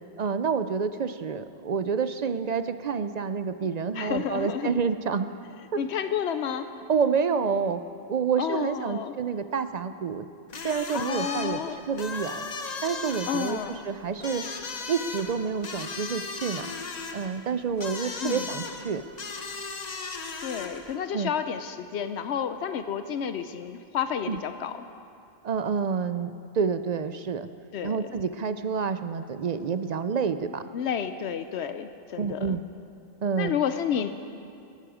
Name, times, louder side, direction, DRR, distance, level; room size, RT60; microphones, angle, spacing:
voice 1, 0.2-5.3 6.9-7.8 8.1-10.3 10.6-12.4 12.8-14.5 14.9-16.7 17.1-19.0 21.1-21.3 24.3-24.4 25.4-27.5 27.8-30.6 32.2-32.6 33.2-33.6, right 6 dB, 55° right, 11 dB, 0.5 m, -28 dB
voice 2, 3.9-4.7 5.8-6.7 8.4-9.1 10.9-11.8 13.3-13.8 18.2-18.5 20.4-24.7 27.7-28.0 30.7-32.6 33.4-34.1, left 8 dB, 80° left, 9 dB, 0.9 m, -30 dB
sound 1, 10.5-21.0, left 4 dB, 40° left, 0.9 m, -37 dB
21.0 x 12.0 x 5.0 m, 2.5 s
omnidirectional pair, 1.1 m